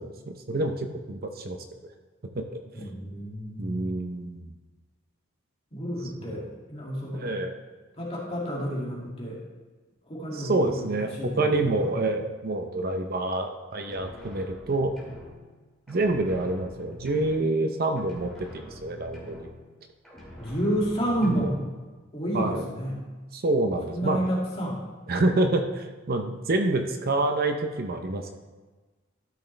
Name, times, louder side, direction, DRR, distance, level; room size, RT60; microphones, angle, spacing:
voice 1, 0.0-1.8 2.3-2.9 3.6-4.5 6.2-6.5 7.1-7.5 10.3-14.9 15.9-19.5 21.2-21.5 22.3-22.6 23.3-24.2 25.1-28.4, right 2 dB, 50° right, 5 dB, 0.7 m, -27 dB
voice 2, 2.7-3.9 5.7-6.4 6.7-7.2 8.0-9.4 10.1-11.6 20.4-21.6 22.1-23.0 23.9-24.8, equal, 30° left, -4 dB, 2.3 m, -30 dB
sound 1, 13.8-15.6 15.9-17.7 18.0-19.8 20.0-21.7, left 1 dB, ahead, 2.4 m, -45 dB
12.5 x 6.1 x 3.3 m, 1.3 s
head